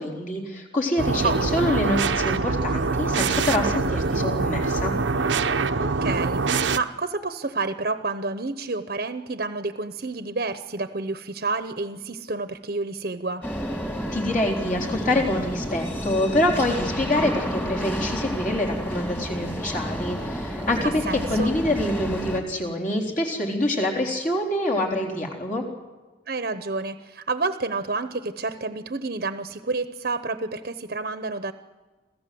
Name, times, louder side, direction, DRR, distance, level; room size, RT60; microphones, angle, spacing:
voice 1, 0.0-4.9 14.1-25.6, left 1 dB, 45° left, 0 dB, 4.0 m, -26 dB
sound 1, 1.0-6.8, right 4 dB, 75° right, 0.8 m, -24 dB
voice 2, 1.2-1.8 5.8-13.4 21.1-21.5 26.3-31.5, right 3 dB, 50° right, 10 dB, 0.9 m, -29 dB
sound 2, 13.4-22.4, equal, 10° left, 2.5 m, -30 dB
27.0 x 15.5 x 7.8 m, 1.3 s
head